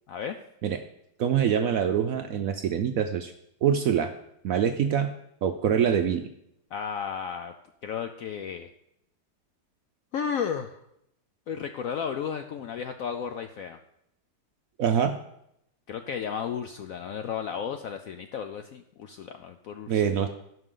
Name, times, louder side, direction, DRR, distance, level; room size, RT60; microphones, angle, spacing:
voice 1, 0.1-0.4 6.7-7.5 7.8-8.7 10.1-10.8 11.5-13.8 15.9-20.0, left 7 dB, 75° left, 7 dB, 0.8 m, -33 dB
voice 2, 1.2-3.3 3.6-4.1 4.4-5.1 5.4-6.3 14.8-15.2 19.9-20.3, right 8 dB, 70° right, 7 dB, 0.8 m, -24 dB
16.0 x 5.7 x 3.8 m, 0.78 s
omnidirectional pair, 1.9 m